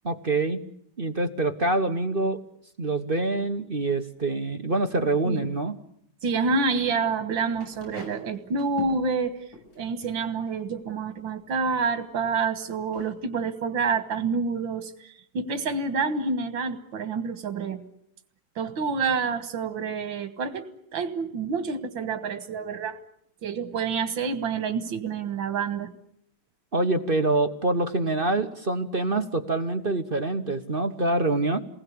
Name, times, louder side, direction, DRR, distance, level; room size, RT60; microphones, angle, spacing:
voice 1, 0.0-0.7 1.0-2.4 2.8-5.7 26.7-31.6, right 2 dB, 35° right, 8 dB, 1.2 m, -25 dB
voice 2, 6.2-9.5 9.8-17.8 18.6-23.0 23.4-25.9, right 4 dB, 85° right, 8 dB, 2.2 m, -28 dB
sound 1, 7.5-11.4 12.3-12.4 12.7-13.1, left 1 dB, 75° left, 7.6 m, -44 dB
28.5 x 20.0 x 8.6 m, 0.73 s
omnidirectional pair, 2.1 m